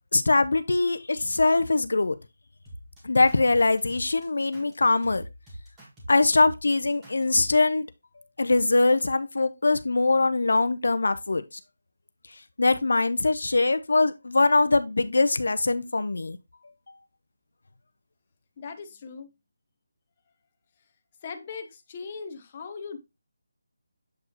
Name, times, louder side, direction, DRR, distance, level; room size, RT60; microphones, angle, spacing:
voice 1, 0.1-2.1 3.0-5.3 6.1-7.9 8.4-11.4 12.6-16.4, left 3 dB, 75° left, 0.6 m, -22 dB
sound 1, 2.7-7.6, equal, 10° right, 1.6 m, -44 dB
voice 2, 18.6-19.3 21.2-23.0, left 5 dB, 20° left, 0.8 m, -39 dB
7.5 x 4.7 x 2.9 m
figure-of-eight pair, 175°, 0 cm